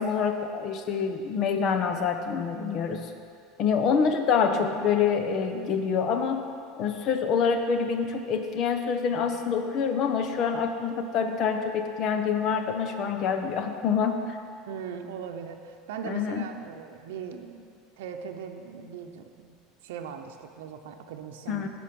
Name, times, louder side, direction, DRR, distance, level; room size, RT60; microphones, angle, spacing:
voice 1, 0.0-3.1 3.6-6.4 6.8-14.4 16.0-16.5 21.5-21.7, left 6 dB, 40° left, 6 dB, 0.8 m, -26 dB
voice 2, 14.7-17.7 18.0-19.5 19.8-21.7, right 7 dB, 85° right, 4 dB, 0.7 m, -39 dB
14.5 x 5.1 x 5.3 m, 2.3 s
supercardioid pair, 150°, 0 cm